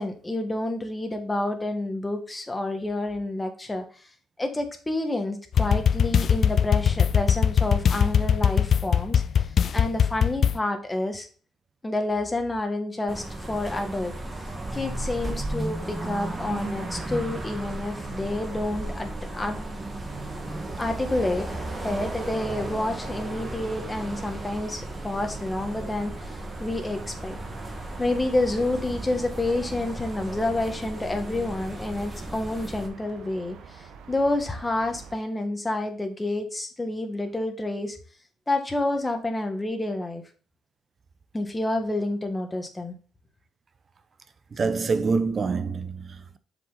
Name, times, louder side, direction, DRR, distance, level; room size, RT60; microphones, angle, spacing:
voice 1, 0.0-3.8 4.4-9.2 9.7-11.3 11.8-14.1 14.7-19.6 20.8-21.5 21.7-27.4 28.0-38.0 38.5-40.2 41.3-42.9, left 2 dB, 15° left, 1.7 m, -29 dB
sound 1, 5.5-10.6, left 8 dB, 55° left, 0.4 m, -21 dB
sound 2, 13.1-32.9, right 1 dB, 20° right, 1.9 m, -35 dB
sound 3, 16.5-35.1, right 6 dB, 75° right, 1.2 m, -45 dB
voice 2, 44.5-46.4, right 4 dB, 40° right, 0.9 m, -26 dB
7.2 x 5.3 x 4.0 m
cardioid pair, 90°, 0 cm